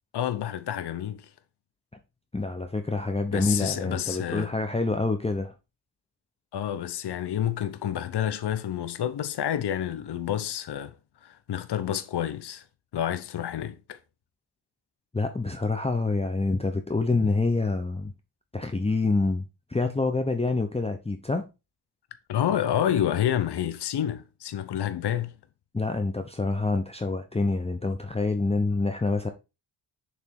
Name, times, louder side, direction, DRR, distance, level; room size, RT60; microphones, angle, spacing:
voice 1, 0.1-1.3 3.3-4.5 6.5-10.9 11.2-12.6 12.9-14.0 22.3-25.4, left 10 dB, 60° left, 0.8 m, -29 dB
voice 2, 2.3-5.5 15.1-18.1 18.5-19.4 19.7-21.4 25.7-29.3, left 3 dB, 15° left, 0.7 m, -26 dB
7.0 x 3.3 x 4.6 m
cardioid pair, 70°, 46 cm